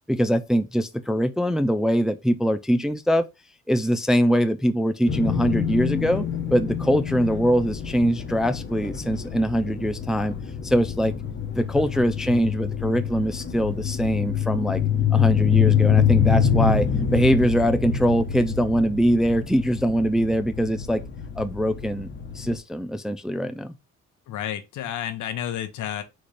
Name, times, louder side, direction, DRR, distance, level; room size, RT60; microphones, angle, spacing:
voice 1, 0.1-3.3 3.7-6.3 6.5-10.4 10.6-11.1 11.5-14.8 15.1-21.0 21.4-23.7, equal, ahead, 0.4 m, -23 dB
sound 1, 5.1-22.6, left 8 dB, 40° left, 1.0 m, -26 dB
voice 2, 24.3-26.0, left 10 dB, 75° left, 0.9 m, -30 dB
4.3 x 2.4 x 4.8 m
cardioid pair, 90°, 30 cm